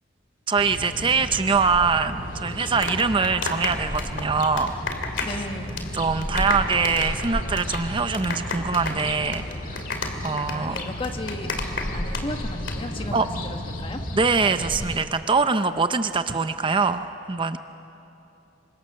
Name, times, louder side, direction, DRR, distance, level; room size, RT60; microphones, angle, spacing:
voice 1, 0.5-4.7 5.1-5.2 5.9-9.9 10.2-10.8 13.1-13.3 14.1-17.6, right 4 dB, 25° right, 10 dB, 0.6 m, -23 dB
sound 1, 0.6-15.0, left 1 dB, 50° left, 1.9 m, -33 dB
sound 2, 2.5-5.4 5.7-6.0 6.2-12.2 12.5-12.7, left 4 dB, 75° left, 2.6 m, -31 dB
voice 2, 5.2-6.0 10.5-11.5 11.9-14.0, left 1 dB, 30° left, 5 dB, 1.5 m, -34 dB
28.0 x 24.5 x 6.5 m, 2.9 s
head